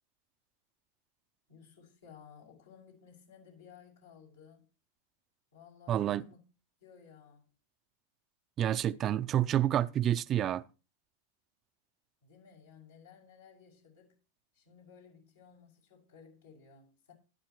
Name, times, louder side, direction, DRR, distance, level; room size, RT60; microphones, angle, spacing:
voice 1, 1.5-4.7 5.5-6.4 6.8-7.5 12.2-14.2 14.5-17.1, left 7 dB, 85° left, 6.1 m, -57 dB
voice 2, 5.9-6.2 8.6-10.6, right 11 dB, 35° right, 0.5 m, -28 dB
13.5 x 10.5 x 3.1 m
hypercardioid pair, 120°, 0 cm